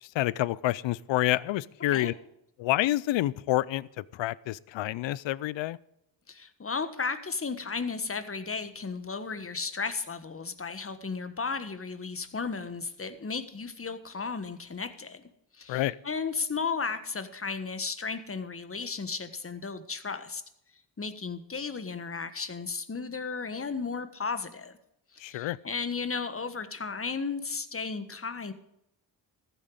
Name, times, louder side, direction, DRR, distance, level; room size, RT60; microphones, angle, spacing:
voice 1, 0.1-2.1 2.6-5.8 15.7-16.0 25.2-25.6, left 16 dB, 85° left, 21 dB, 0.6 m, -28 dB
voice 2, 6.3-15.2 15.5-20.4 21.0-24.8 25.2-28.5, left 4 dB, 30° left, 11 dB, 1.5 m, -34 dB
14.5 x 9.2 x 5.0 m, 0.79 s
cardioid pair, 70°, 44 cm